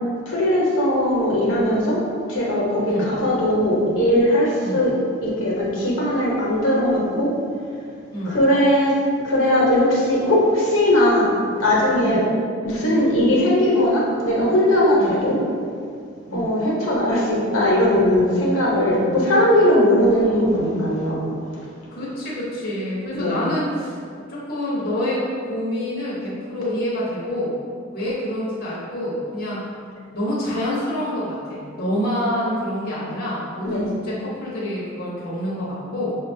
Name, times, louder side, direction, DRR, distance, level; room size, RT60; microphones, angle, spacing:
voice 1, 0.3-2.0 2.3-4.9 5.2-7.3 8.3-8.9 9.2-12.2 12.6-15.4 16.3-21.2 23.1-23.4 33.6-33.9, left 1 dB, 80° left, -5 dB, 0.8 m, -19 dB
voice 2, 2.8-3.2 4.6-4.9 8.1-8.4 12.0-12.3 15.0-15.2 16.3-16.6 21.9-24.0 24.3-27.6 27.9-29.7 30.1-36.2, equal, 50° left, -7 dB, 0.7 m, -27 dB
5.1 x 2.2 x 2.6 m, 2.3 s
head